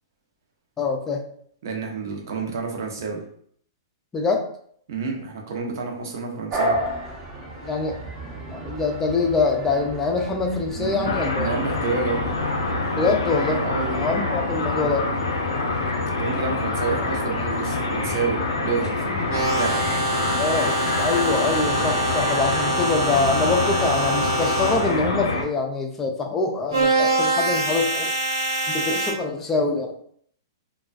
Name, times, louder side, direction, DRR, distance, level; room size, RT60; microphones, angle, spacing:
voice 1, 0.8-1.2 4.1-4.5 7.6-8.0 8.5-11.5 13.0-15.1 20.4-28.1 28.7-29.9, left 3 dB, 15° left, 2 dB, 0.4 m, -24 dB
voice 2, 1.6-3.2 4.9-6.8 10.8-12.2 13.6-14.0 16.2-19.8, right 4 dB, 65° right, 1 dB, 0.7 m, -29 dB
sound 1, 6.5-19.5, right 1 dB, 25° right, 0.7 m, -34 dB
sound 2, 11.0-25.4, left 3 dB, 85° left, 0.5 m, -26 dB
sound 3, 19.3-25.0 26.7-29.1, right 2 dB, 85° right, 1.1 m, -24 dB
2.3 x 2.2 x 2.4 m, 0.62 s
hypercardioid pair, 125°, 2 cm